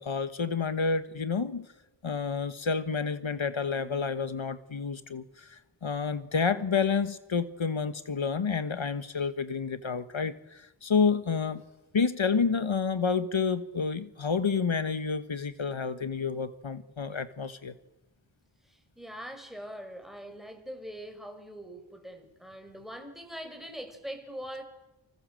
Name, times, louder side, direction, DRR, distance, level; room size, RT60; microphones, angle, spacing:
voice 1, 0.0-1.6 2.0-11.6 11.9-17.7, left 5 dB, 75° left, 11 dB, 1.3 m, -29 dB
voice 2, 3.8-4.1 18.6-24.6, equal, ahead, 6 dB, 5.5 m, -43 dB
29.0 x 25.5 x 7.7 m, 0.99 s
wide cardioid pair, 50°, 47 cm